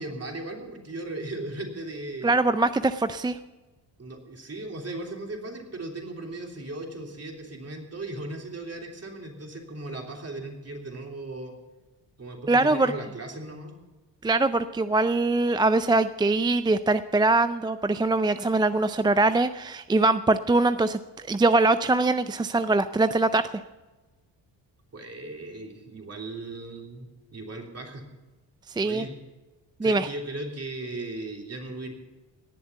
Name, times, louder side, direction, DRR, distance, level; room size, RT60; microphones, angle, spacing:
voice 1, 0.0-2.3 4.0-11.5 12.2-13.8 24.9-28.0 28.8-29.1 29.8-31.9, right 2 dB, 30° right, 1 dB, 3.4 m, -37 dB
voice 2, 2.2-3.4 12.5-12.9 14.2-23.4 28.8-29.0 29.8-30.1, right 2 dB, 10° right, 12 dB, 0.3 m, -22 dB
18.5 x 7.2 x 7.0 m, 1.2 s
supercardioid pair, 65°, 46 cm